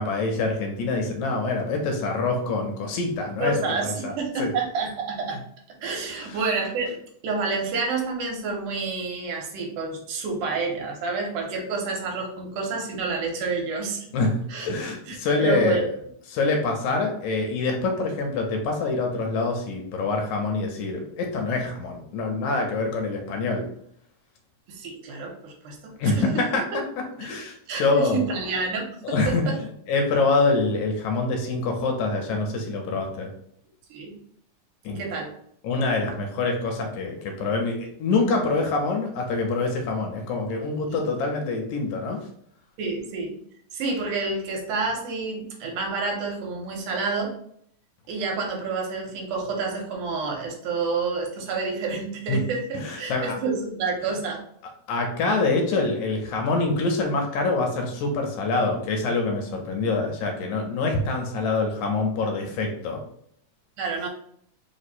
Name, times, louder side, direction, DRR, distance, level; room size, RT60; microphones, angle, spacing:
voice 1, 0.0-4.1 4.4-4.5 6.2-6.4 14.1-15.8 16.3-23.7 26.0-26.6 27.2-28.3 29.0-29.5 29.9-33.3 34.9-35.0 35.6-42.2 52.3-52.4 52.7-53.4 54.9-63.0, left 3 dB, 75° left, 2 dB, 1.9 m, -25 dB
voice 2, 3.4-5.4 5.8-7.0 7.2-14.1 14.5-14.7 15.0-15.8 24.7-26.4 27.7-29.6 33.9-34.2 34.9-35.4 40.9-41.0 42.8-43.4 43.7-47.4 48.1-54.4 63.8-64.1, right 4 dB, 85° right, 0 dB, 2.4 m, -29 dB
4.9 x 2.1 x 4.1 m, 0.67 s
omnidirectional pair, 3.7 m